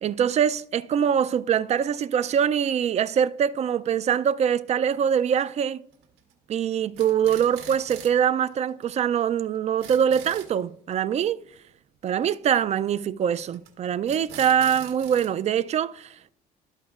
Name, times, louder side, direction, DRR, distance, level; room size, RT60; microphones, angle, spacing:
voice 1, 0.0-5.8 6.5-11.4 12.0-16.3, right 8 dB, 40° right, 0.4 m, -23 dB
sound 1, 5.9-6.3 6.7-8.2 8.5-8.6 8.8-8.9 9.2-9.3 9.6-10.5 13.3-13.7 14.1-15.3, right 8 dB, 90° right, 1.7 m, -42 dB
13.5 x 5.3 x 2.4 m
cardioid pair, 110°, 17 cm